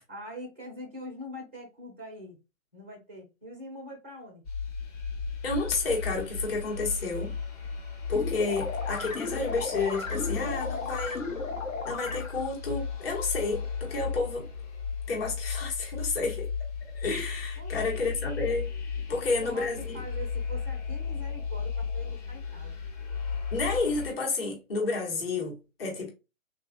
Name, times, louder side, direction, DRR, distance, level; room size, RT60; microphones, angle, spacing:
voice 1, 0.1-2.4 2.7-4.4 17.5-18.1 19.1-22.8, equal, 10° right, 0.4 m, -43 dB
sound 1, 4.4-24.1, left 5 dB, 30° left, 0.9 m, -35 dB
voice 2, 5.4-7.3 8.1-11.3 11.8-14.5 15.1-16.5 16.9-18.7 19.1-20.0 23.5-26.1, left 3 dB, 45° left, 1.3 m, -30 dB
sound 2, 8.1-12.6, left 3 dB, 70° left, 1.2 m, -35 dB
3.6 x 2.6 x 2.2 m
figure-of-eight pair, 140°, 41 cm